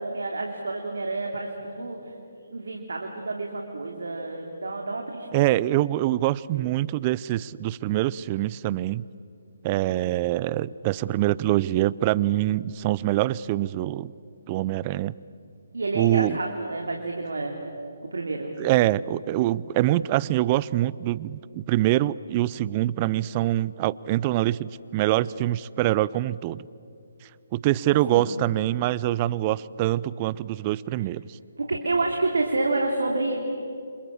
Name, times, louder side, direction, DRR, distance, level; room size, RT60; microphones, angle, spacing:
voice 1, 0.0-2.1 2.5-5.3 6.5-6.7 9.7-10.0 15.7-17.6 18.1-18.6 28.1-28.4 31.6-33.4, right 2 dB, 75° right, 1 dB, 3.0 m, -29 dB
voice 2, 5.3-9.0 9.6-14.1 14.5-15.1 15.9-16.4 18.6-26.6 27.5-31.2, right 15 dB, 30° right, 21 dB, 0.5 m, -24 dB
29.5 x 26.5 x 7.2 m, 2.6 s
figure-of-eight pair, 145°, 0 cm